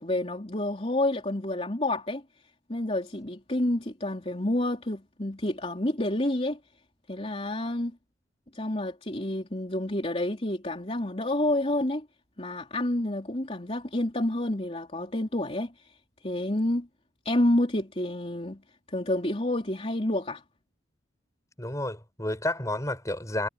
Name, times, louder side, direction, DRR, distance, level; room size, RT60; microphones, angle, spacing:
voice 1, 0.0-2.2 2.7-6.6 7.1-8.0 8.5-12.1 12.4-16.9 17.3-18.6 18.9-20.4, left 1 dB, 30° left, 3.6 m, -29 dB
voice 2, 21.6-23.5, left 1 dB, 15° left, 6.9 m, -31 dB
head